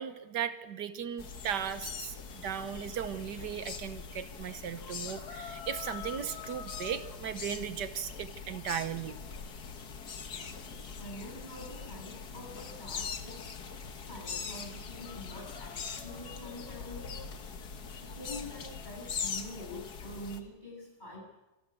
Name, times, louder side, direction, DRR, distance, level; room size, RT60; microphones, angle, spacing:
voice 1, 0.0-9.2, right 8 dB, 80° right, 11 dB, 1.6 m, -37 dB
sound 1, 1.2-20.4, left 6 dB, 70° left, 1.9 m, -42 dB
voice 2, 10.6-13.5 14.1-17.2 18.0-21.2, left 1 dB, 25° left, -2 dB, 7.7 m, -46 dB
26.0 x 12.5 x 8.3 m, 0.98 s
omnidirectional pair, 1.8 m